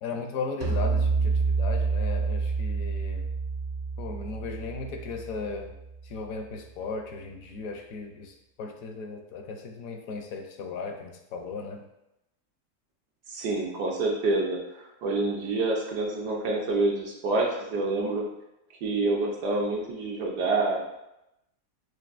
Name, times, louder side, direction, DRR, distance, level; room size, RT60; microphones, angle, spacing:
voice 1, 0.0-3.3 4.0-5.7 6.0-11.9, left 4 dB, 70° left, 4 dB, 0.9 m, -36 dB
sound 1, 0.6-6.0, right 4 dB, 60° right, 0.9 m, -28 dB
voice 2, 13.3-18.2 18.8-20.8, right 2 dB, 80° right, -1 dB, 1.4 m, -27 dB
6.5 x 2.6 x 2.5 m, 0.87 s
omnidirectional pair, 1.7 m